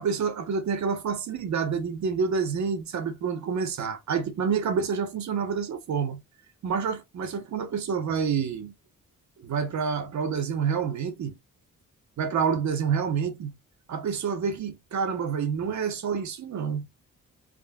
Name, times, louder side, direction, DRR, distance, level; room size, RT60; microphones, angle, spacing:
voice 1, 0.0-6.2 6.6-8.7 9.4-11.4 12.2-13.5 13.9-17.0, right 6 dB, 60° right, 0.7 m, -28 dB
3.7 x 2.1 x 2.2 m
wide cardioid pair, 140°, 33 cm